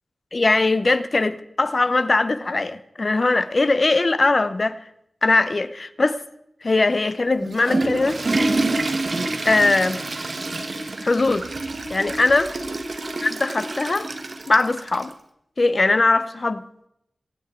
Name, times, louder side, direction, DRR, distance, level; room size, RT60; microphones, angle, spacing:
voice 1, 0.3-4.8 5.2-6.2 6.6-8.2 9.4-10.0 11.0-11.5 11.9-12.5 13.2-14.1 14.5-15.1 15.6-16.6, left 3 dB, 45° left, 0.8 m, -20 dB
Water / Toilet flush, 7.3-15.1, right 2 dB, 55° right, 1.5 m, -27 dB
23.0 x 9.0 x 4.5 m
wide cardioid pair, 80°, 0 cm